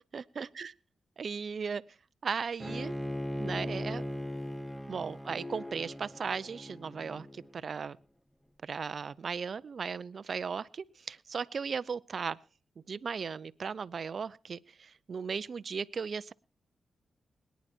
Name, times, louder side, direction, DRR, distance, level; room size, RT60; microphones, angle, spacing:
voice 1, 0.1-0.7 1.2-1.8 2.2-2.9 3.4-4.0 4.9-8.0 8.6-12.4 12.9-16.3, right 5 dB, 60° right, 18 dB, 0.6 m, -36 dB
Bowed string instrument, 2.6-7.7, left 1 dB, 5° left, 1.0 m, -39 dB
22.5 x 10.5 x 4.4 m, 0.35 s
cardioid pair, 55°, 0 cm